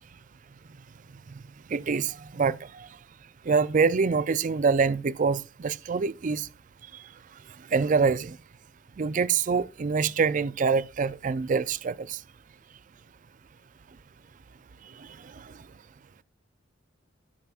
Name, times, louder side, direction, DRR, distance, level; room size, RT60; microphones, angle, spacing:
voice 1, 1.7-2.9 3.5-6.5 7.7-8.4 9.0-12.2, right 5 dB, 40° right, 0.4 m, -25 dB
12.5 x 7.3 x 2.4 m
head